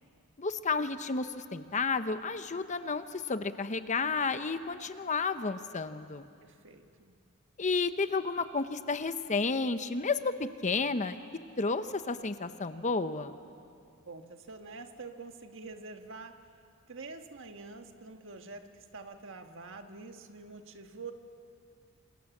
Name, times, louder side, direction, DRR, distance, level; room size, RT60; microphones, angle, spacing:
voice 1, 0.4-6.2 7.6-11.2 11.6-13.3, left 4 dB, 35° left, 10 dB, 0.8 m, -31 dB
voice 2, 6.4-7.2 14.1-16.4 16.9-21.1, right 3 dB, 60° right, 6 dB, 1.6 m, -46 dB
27.5 x 26.5 x 7.3 m, 2.4 s
head